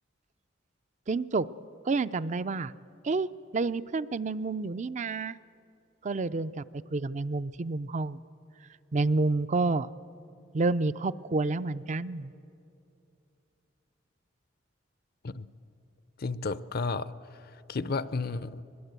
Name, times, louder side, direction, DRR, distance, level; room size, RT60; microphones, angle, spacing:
voice 1, 1.1-1.5 1.9-2.7 3.0-3.3 3.5-5.4 6.0-6.6 6.9-8.2 8.9-9.9 10.5-12.3, right 3 dB, 40° right, 16 dB, 0.4 m, -29 dB
voice 2, 16.2-18.6, left 3 dB, 50° left, 15 dB, 0.6 m, -33 dB
22.5 x 21.0 x 8.2 m, 2.6 s
head